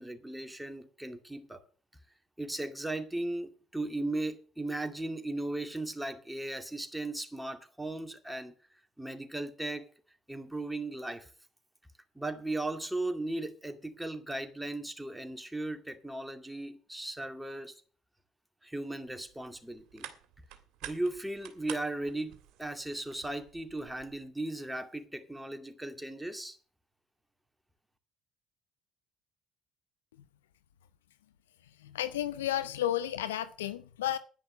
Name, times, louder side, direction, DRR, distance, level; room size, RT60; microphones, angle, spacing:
voice 1, 0.0-1.6 2.4-8.6 9.0-9.9 10.3-11.3 12.1-17.8 18.6-20.1 20.8-22.3 22.6-26.6, right 2 dB, 5° right, 2.3 m, -37 dB
sound 1, 19.1-24.3, right 11 dB, 65° right, 1.9 m, -49 dB
voice 2, 31.8-34.2, left 12 dB, 80° left, 0.7 m, -32 dB
10.5 x 10.5 x 6.6 m
hypercardioid pair, 55°, 0 cm